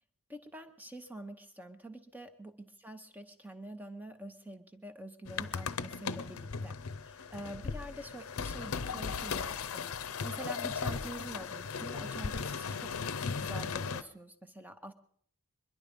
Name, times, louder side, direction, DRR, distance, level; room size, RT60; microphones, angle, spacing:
voice 1, 0.3-9.9 10.2-13.0 13.4-14.9, right 1 dB, 10° right, 8 dB, 0.8 m, -46 dB
sound 1, 5.3-14.0, left 5 dB, 75° left, 0.6 m, -37 dB
22.5 x 11.5 x 5.2 m, 0.62 s
head